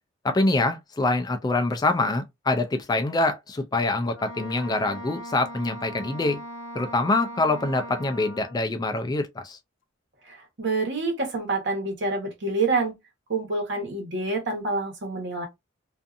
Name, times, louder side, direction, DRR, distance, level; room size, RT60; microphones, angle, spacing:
voice 1, 0.2-6.4 6.7-9.6, left 2 dB, 20° left, 0.3 m, -25 dB
Wind instrument woodwind instrument, 4.1-8.6, equal, 65° left, 0.6 m, -39 dB
voice 2, 10.2-12.9 13.3-15.5, right 3 dB, 60° right, 1.1 m, -27 dB
2.6 x 2.4 x 2.4 m
head